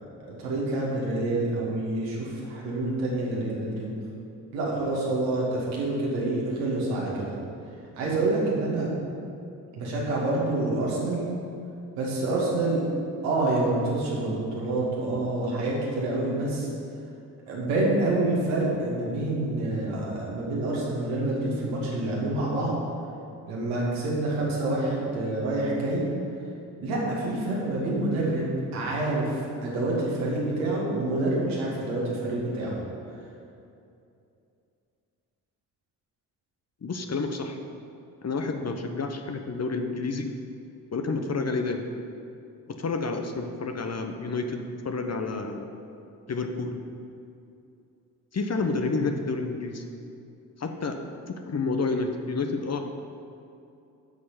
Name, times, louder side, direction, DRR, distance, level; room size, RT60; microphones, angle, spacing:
voice 1, 0.2-3.9 4.5-7.4 8.0-8.9 9.8-11.2 12.0-12.8 13.2-16.7 17.5-22.8 23.5-26.0 26.8-32.7, right 2 dB, 75° right, -4 dB, 2.3 m, -27 dB
voice 2, 36.8-37.6 38.2-40.3 40.9-41.8 42.7-45.7 46.3-46.8 48.3-49.8 50.6-51.0 51.3-52.8, left 3 dB, 30° left, 5 dB, 1.0 m, -29 dB
9.5 x 6.6 x 5.6 m, 2.6 s
figure-of-eight pair, 40°, 49 cm